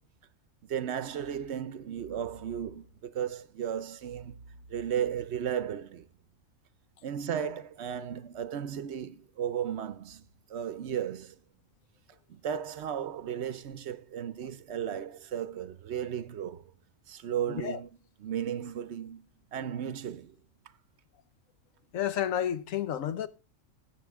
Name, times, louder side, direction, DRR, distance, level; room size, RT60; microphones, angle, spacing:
voice 1, 0.6-4.4 4.7-6.1 7.0-11.4 12.3-16.7 17.1-17.9 18.2-19.2 19.5-20.4, right 9 dB, 65° right, 0.9 m, -35 dB
voice 2, 17.5-17.8 21.9-23.3, left 10 dB, 90° left, 1.2 m, -31 dB
13.5 x 8.3 x 3.5 m
omnidirectional pair, 1.3 m